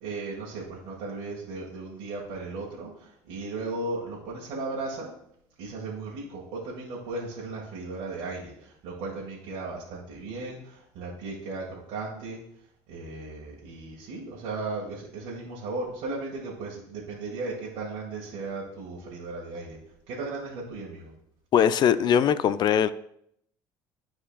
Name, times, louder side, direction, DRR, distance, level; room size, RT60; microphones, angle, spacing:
voice 1, 0.0-5.1 5.6-12.4 12.9-19.8 20.1-21.1, right 3 dB, 75° right, -5 dB, 1.7 m, -36 dB
voice 2, 21.5-22.9, left 8 dB, 50° left, 15 dB, 0.4 m, -21 dB
12.5 x 4.4 x 2.3 m, 0.71 s
supercardioid pair, 85°, 9 cm